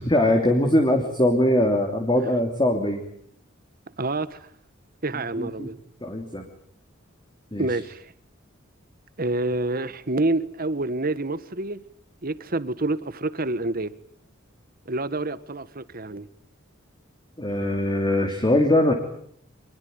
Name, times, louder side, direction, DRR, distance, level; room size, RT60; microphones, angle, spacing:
voice 1, 0.0-3.0 5.4-5.7 6.0-6.5 7.5-7.7 17.4-18.9, left 1 dB, 20° left, 3.0 m, -21 dB
voice 2, 4.0-4.5 5.0-5.8 7.6-8.1 9.2-11.8 12.2-13.9 14.9-16.3, right 2 dB, 45° right, 1.4 m, -27 dB
25.0 x 22.0 x 9.4 m
head